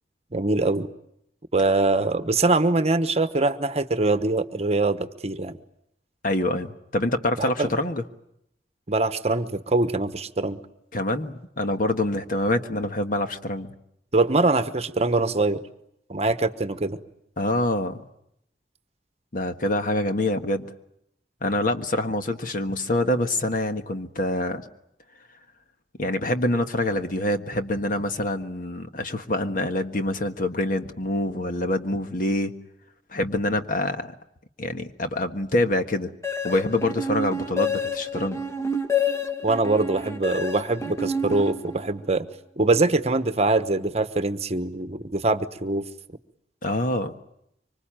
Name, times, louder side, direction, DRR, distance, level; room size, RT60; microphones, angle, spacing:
voice 1, 0.3-0.9 1.5-5.5 7.4-7.7 8.9-10.6 14.1-15.6 16.1-17.0 39.4-42.3 42.6-45.9, right 2 dB, 35° right, 11 dB, 1.1 m, -23 dB
voice 2, 6.2-8.0 10.9-13.7 17.4-18.0 19.3-20.7 21.4-24.6 26.0-32.5 33.1-34.1 34.6-36.1 36.4-38.4 46.6-47.1, left 1 dB, 50° left, 7 dB, 1.5 m, -25 dB
sound 1, 36.2-42.1, left 2 dB, 15° left, 1.3 m, -28 dB
25.0 x 25.0 x 8.9 m, 0.78 s
head